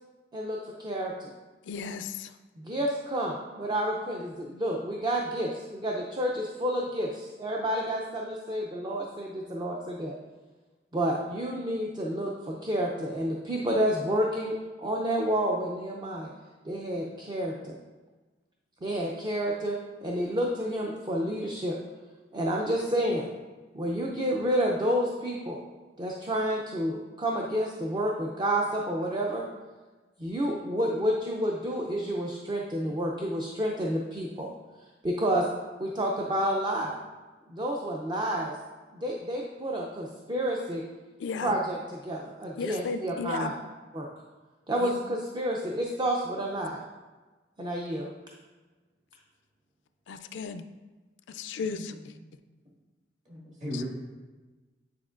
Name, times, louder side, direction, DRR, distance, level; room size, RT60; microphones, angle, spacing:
voice 1, 0.3-1.3 2.6-10.1 10.9-16.3 16.6-17.8 18.8-21.8 22.3-23.2 23.7-25.6 26.0-29.4 30.2-34.5 35.0-35.5 35.8-37.0 37.5-38.5 38.9-40.8 41.4-43.6 43.9-44.1 44.7-46.8 47.6-48.1, equal, 25° right, -1 dB, 0.5 m, -30 dB
voice 2, 1.6-2.3 41.2-41.5 42.5-43.5 44.8-45.0 50.1-50.6 51.3-52.1 53.7-53.8, left 5 dB, 85° left, 10 dB, 0.4 m, -35 dB
voice 3, 51.6-52.2 53.3-53.8, left 1 dB, 45° right, -4 dB, 1.8 m, -38 dB
9.3 x 4.4 x 2.4 m, 1.3 s
head